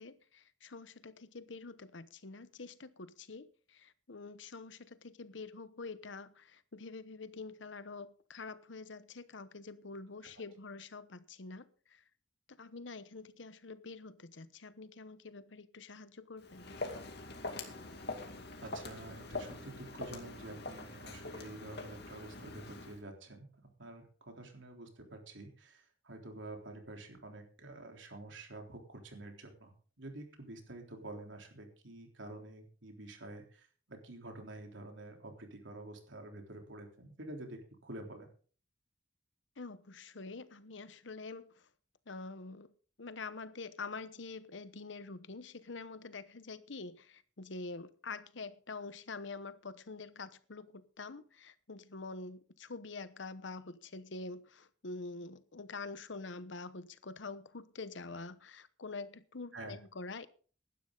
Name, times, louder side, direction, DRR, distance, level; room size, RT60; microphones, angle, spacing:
voice 1, 0.0-12.0 12.6-16.7 39.6-41.5 42.1-42.7 43.0-60.3, left 3 dB, 75° left, 1.0 m, -46 dB
Walk footsteps, 16.4-23.0, left 2 dB, 60° left, 2.4 m, -44 dB
voice 2, 18.6-38.3 59.5-59.7, right 2 dB, 80° right, 3.6 m, -48 dB
16.5 x 12.0 x 3.9 m
head